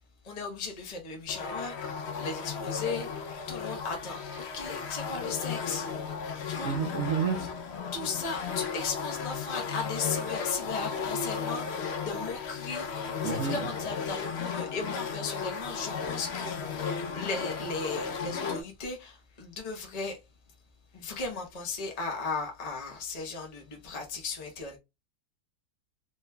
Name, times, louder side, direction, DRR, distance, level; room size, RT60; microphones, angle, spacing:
voice 1, 0.2-6.1 6.5-6.9 7.4-7.5 7.9-20.2 20.9-24.8, left 4 dB, 30° left, 0.9 m, -36 dB
sound 1, 1.3-18.6, left 6 dB, 60° left, 0.7 m, -35 dB
voice 2, 6.6-7.5 13.2-13.6, right 6 dB, 65° right, 1.0 m, -29 dB
4.0 x 3.3 x 2.2 m
omnidirectional pair, 1.6 m